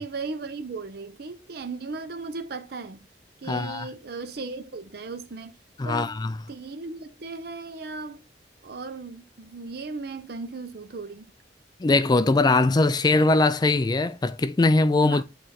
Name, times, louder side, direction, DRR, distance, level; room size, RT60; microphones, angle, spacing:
voice 1, 0.0-3.1 3.4-5.5 5.8-6.2 6.5-8.2 8.6-11.3 15.0-15.2, right 3 dB, 60° right, 0.6 m, -36 dB
voice 2, 3.5-3.9 5.8-6.3 11.8-15.2, left 2 dB, 25° left, 0.3 m, -21 dB
8.6 x 3.2 x 4.2 m
head